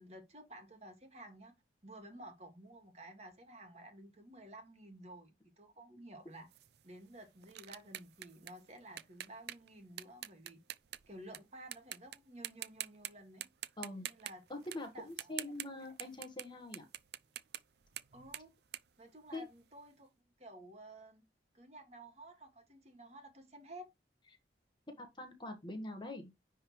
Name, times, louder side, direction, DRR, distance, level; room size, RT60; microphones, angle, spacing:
voice 1, 0.0-1.5 1.8-6.5 6.8-10.6 11.1-13.5 14.0-14.4 14.9-15.1 18.1-18.5 19.0-20.1 20.4-21.2 21.5-23.9, right 1 dB, 35° right, 1.9 m, -53 dB
sound 1, 6.5-11.4 11.7-12.2 12.4-13.1 13.4-19.7, right 12 dB, 60° right, 0.5 m, -46 dB
voice 2, 14.5-16.8 19.3-19.5 24.9-26.3, left 1 dB, 25° left, 1.3 m, -44 dB
9.9 x 3.6 x 3.1 m
head